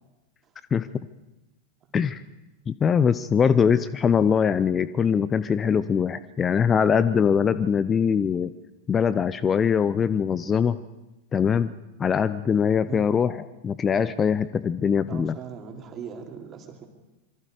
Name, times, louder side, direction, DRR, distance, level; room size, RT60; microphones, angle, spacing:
voice 1, 1.9-2.2 2.7-8.5 8.9-10.8 11.3-11.7 12.0-15.3, left 7 dB, 20° left, 15 dB, 0.7 m, -22 dB
voice 2, 15.1-16.9, right 7 dB, 30° right, 2 dB, 3.9 m, -40 dB
26.0 x 24.0 x 5.0 m, 1.0 s
figure-of-eight pair, 90°, 0 cm